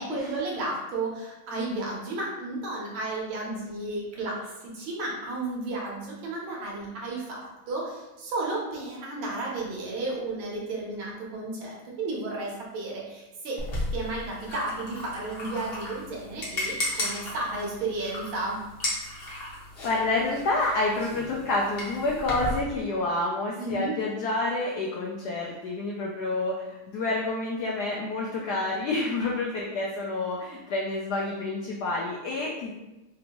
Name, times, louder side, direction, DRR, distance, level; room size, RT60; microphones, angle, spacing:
voice 1, 0.0-13.6 13.9-18.6 23.6-24.0, right 2 dB, 70° right, -3 dB, 1.6 m, -33 dB
sound 1, 13.6-22.6, left 1 dB, 45° left, 0.7 m, -35 dB
voice 2, 19.8-32.7, left 2 dB, 85° left, -2 dB, 0.8 m, -28 dB
4.4 x 2.6 x 2.9 m, 1.0 s
omnidirectional pair, 2.3 m